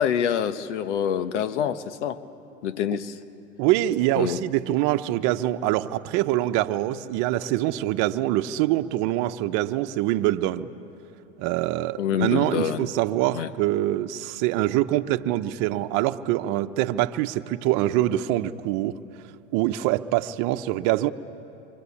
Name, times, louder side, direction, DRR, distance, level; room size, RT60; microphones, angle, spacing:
voice 1, 0.0-2.2 2.6-3.2 4.1-4.4 12.0-12.9 13.3-13.5, left 8 dB, 80° left, 11 dB, 1.3 m, -26 dB
voice 2, 3.6-10.7 11.4-18.9 19.5-21.1, right 14 dB, 60° right, 10 dB, 1.0 m, -24 dB
27.0 x 24.0 x 8.5 m, 2.9 s
hypercardioid pair, 100°, 34 cm